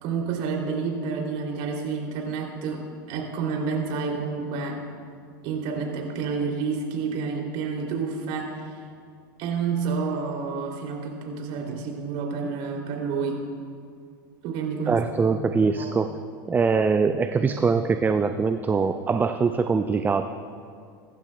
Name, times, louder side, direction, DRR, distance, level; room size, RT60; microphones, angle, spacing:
voice 1, 0.0-2.8 3.1-4.8 5.4-8.8 9.4-13.4 14.4-15.0 15.8-15.9, right 5 dB, 55° right, 0 dB, 2.9 m, -29 dB
voice 2, 14.9-16.1 16.5-20.2, right 5 dB, 15° right, 9 dB, 0.5 m, -23 dB
23.0 x 11.5 x 2.2 m, 2.2 s
hypercardioid pair, 90°, 11 cm